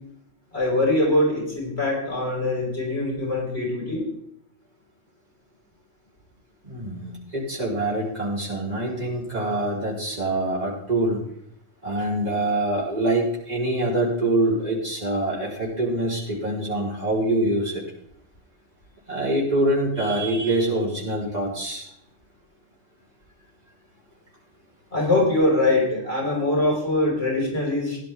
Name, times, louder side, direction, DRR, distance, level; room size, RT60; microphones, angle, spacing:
voice 1, 0.5-4.1 24.9-28.0, left 2 dB, 60° left, -2 dB, 5.3 m, -23 dB
voice 2, 6.6-11.2 11.8-17.8 19.1-21.9, right 1 dB, 35° right, -5 dB, 3.9 m, -25 dB
15.5 x 11.0 x 3.5 m, 0.70 s
omnidirectional pair, 1.2 m